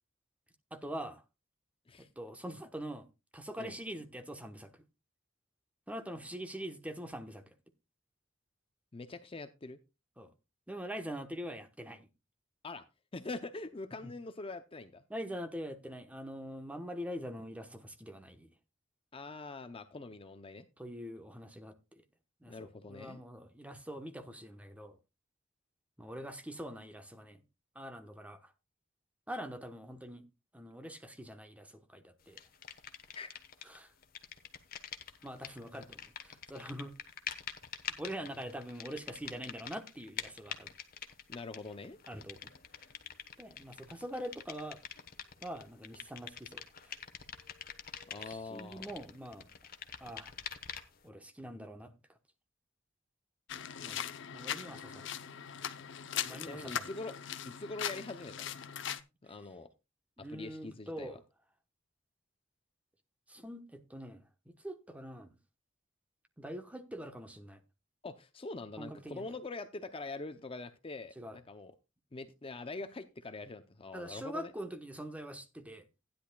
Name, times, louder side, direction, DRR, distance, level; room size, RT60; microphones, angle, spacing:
voice 1, 0.7-1.2 2.0-3.1 3.3-4.7 5.9-7.5 10.2-10.3 10.7-12.1 14.0-14.1 15.1-18.5 20.8-21.7 22.4-25.0 26.0-27.4 27.7-28.5 29.3-30.2 30.5-32.4 33.6-33.9 35.2-37.0 38.0-40.7 42.1-42.5 43.4-44.8 45.4-46.9 48.2-49.5 50.0-50.3 51.0-51.9 53.8-54.1 54.3-55.1 56.2-56.9 60.2-61.2 63.3-65.4 66.4-67.6 68.8-69.2 71.2-71.4 73.9-75.9, equal, 5° right, 1.0 m, -44 dB
voice 2, 8.9-9.8 12.6-12.9 13.1-15.0 19.1-20.7 22.4-23.2 33.1-33.3 41.3-42.0 48.1-48.9 56.3-57.1 57.4-58.6 59.2-59.7 60.2-61.2 68.0-71.7 72.1-74.5, left 3 dB, 30° left, 0.6 m, -44 dB
sound 1, 32.4-33.8 34.0-51.1, left 8 dB, 50° left, 1.1 m, -46 dB
sound 2, 53.5-59.0, left 9 dB, 70° left, 0.7 m, -40 dB
15.5 x 10.0 x 2.3 m
head